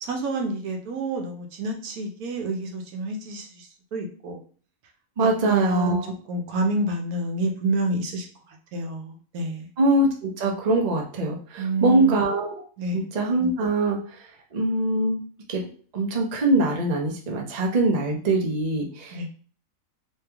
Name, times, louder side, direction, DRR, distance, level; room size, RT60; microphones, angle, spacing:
voice 1, 0.0-4.4 5.2-6.0 6.3-9.7 11.6-12.3 12.8-13.0 19.1-19.3, right 2 dB, 75° right, 3 dB, 1.2 m, -29 dB
voice 2, 5.2-6.1 9.8-12.6 12.9-14.0 14.5-15.2 15.5-15.7 15.9-19.3, right 2 dB, 40° right, 0 dB, 0.7 m, -23 dB
3.3 x 3.1 x 3.4 m, 0.44 s
omnidirectional pair, 1.6 m